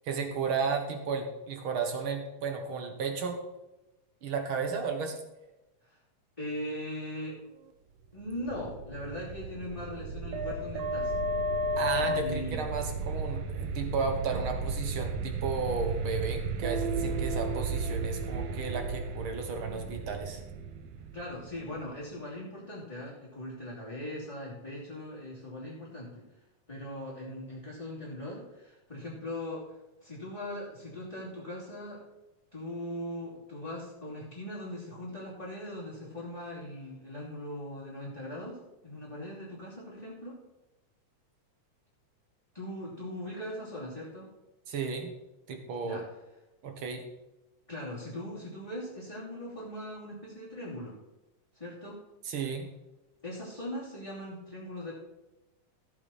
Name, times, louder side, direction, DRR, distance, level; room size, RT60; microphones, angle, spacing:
voice 1, 0.1-3.4 4.2-5.2 11.8-20.4 44.7-45.1 45.5-46.0 46.6-47.0 52.2-52.7, right 5 dB, 50° right, 5 dB, 1.9 m, -33 dB
voice 2, 6.4-7.4 8.1-11.1 12.0-12.6 21.1-26.2 26.7-29.8 30.0-32.0 32.5-40.4 42.5-44.3 45.8-46.1 47.7-50.9 51.5-52.0 53.2-54.9, left 1 dB, 10° left, -8 dB, 2.7 m, -40 dB
sound 1, 8.3-22.0, right 2 dB, 85° right, 2.5 m, -33 dB
14.5 x 8.7 x 4.3 m, 0.99 s
omnidirectional pair, 3.5 m